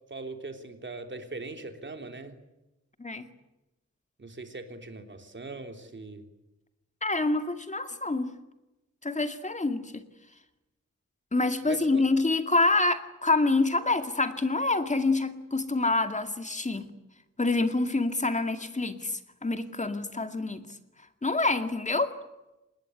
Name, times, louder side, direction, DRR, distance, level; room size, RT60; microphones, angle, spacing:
voice 1, 0.1-2.4 4.2-6.2 11.6-12.0, right 3 dB, 40° right, 6 dB, 3.5 m, -40 dB
voice 2, 7.0-8.3 9.0-10.0 11.3-16.9 17.4-20.7 21.2-22.2, left 3 dB, 25° left, 8 dB, 2.3 m, -27 dB
26.0 x 20.5 x 9.9 m, 0.98 s
wide cardioid pair, 120°, 29 cm